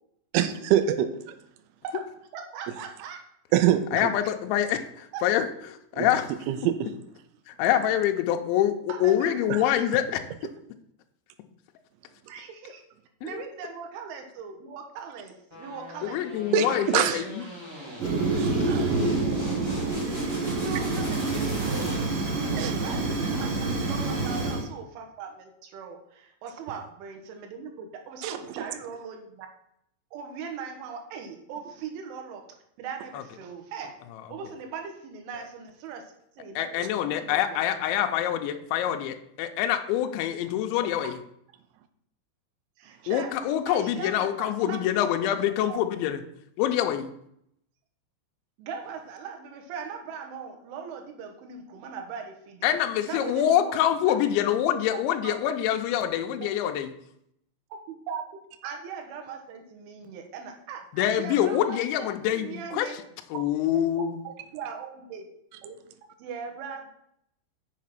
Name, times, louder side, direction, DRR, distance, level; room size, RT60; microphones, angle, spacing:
voice 1, 0.3-0.9 3.5-3.8 5.9-6.1 6.5-6.9 9.5-9.6 16.5-17.3 18.3-18.9 22.5-22.7 28.2-28.3, right 11 dB, 90° right, 9 dB, 3.6 m, -24 dB
voice 2, 2.3-3.2 5.1-5.3 8.9-9.6 12.3-12.8 13.2-16.9 20.6-29.5 30.1-32.4 32.8-34.0 34.3-37.6 42.8-43.3 43.7-44.8 45.6-45.8 48.6-52.8 53.0-54.2 54.7-55.0 55.2-55.5 56.4-56.5 57.7-58.2 58.6-63.0 63.3-63.4 64.3-65.3 65.6-65.8 66.2-66.9, right 6 dB, 75° right, 4 dB, 3.6 m, -40 dB
voice 3, 3.9-6.3 7.5-10.2 13.2-13.3 16.1-17.4 36.6-41.1 43.1-46.2 46.6-47.1 52.6-56.9 60.9-62.9 63.3-64.2, left 11 dB, 80° left, 6 dB, 2.7 m, -25 dB
sound 1, 15.5-22.4, equal, 10° right, 1.3 m, -40 dB
Fire, 18.0-24.6, right 3 dB, 50° right, 3.5 m, -27 dB
7.4 x 6.7 x 5.9 m, 0.74 s
omnidirectional pair, 6.0 m